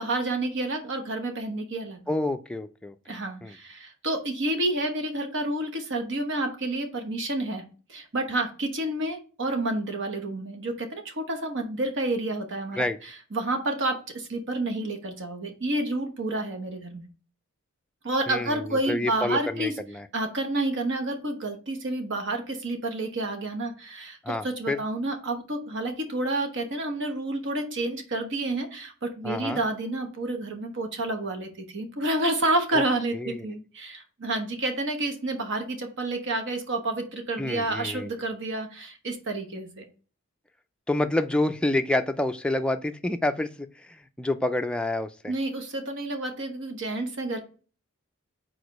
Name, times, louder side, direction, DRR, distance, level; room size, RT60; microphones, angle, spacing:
voice 1, 0.0-2.0 3.1-7.6 7.9-12.8 13.3-17.0 18.0-19.7 20.1-39.8 45.3-47.4, right 2 dB, 60° right, 5 dB, 1.1 m, -29 dB
voice 2, 2.1-2.9 3.4-3.6 12.7-13.0 18.3-20.1 24.2-24.8 29.2-29.6 32.7-32.8 33.1-33.5 37.4-38.1 40.9-45.3, left 2 dB, 5° left, 6 dB, 0.4 m, -28 dB
4.8 x 4.3 x 5.2 m, 0.38 s
head